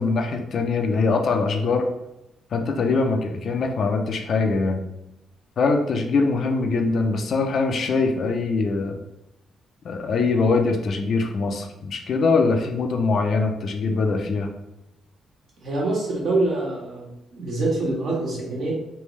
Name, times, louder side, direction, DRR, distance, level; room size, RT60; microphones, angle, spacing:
voice 1, 0.0-1.9 2.5-4.8 5.6-9.0 9.8-14.5, left 4 dB, 55° left, 4 dB, 0.5 m, -22 dB
voice 2, 15.6-17.1 17.3-18.7, right 2 dB, 60° right, -4 dB, 1.4 m, -25 dB
3.3 x 2.6 x 3.2 m, 0.90 s
cardioid pair, 90°, 0 cm